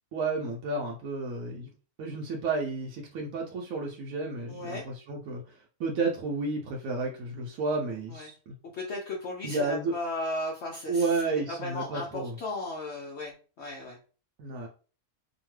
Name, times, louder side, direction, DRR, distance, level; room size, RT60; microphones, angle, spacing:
voice 1, 0.1-1.7 2.0-8.5 9.4-9.9 10.9-12.4 14.4-14.7, right 3 dB, 70° right, -2 dB, 1.0 m, -31 dB
voice 2, 4.5-4.8 8.1-8.3 8.6-14.0, left 2 dB, 65° left, -1 dB, 0.7 m, -36 dB
2.8 x 2.2 x 3.1 m, 0.37 s
omnidirectional pair, 1.6 m